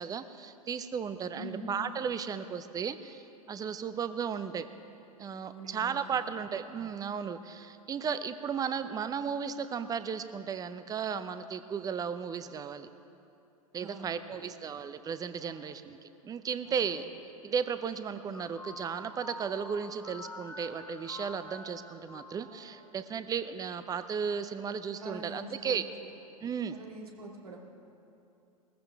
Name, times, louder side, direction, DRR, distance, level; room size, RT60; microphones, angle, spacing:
voice 1, 0.0-4.7 5.2-12.9 13.7-17.1 17.4-25.8 26.4-26.8, right 7 dB, 20° right, 12 dB, 0.6 m, -35 dB
voice 2, 1.3-1.7 5.4-6.5 13.7-14.6 15.4-15.7 16.6-17.0 25.0-26.1 26.7-27.6, right 2 dB, 80° right, 0 dB, 2.2 m, -46 dB
sound 1, 18.3-23.4, left 2 dB, 10° left, 0.9 m, -47 dB
19.5 x 14.5 x 3.5 m, 2.8 s
figure-of-eight pair, 95°, 19 cm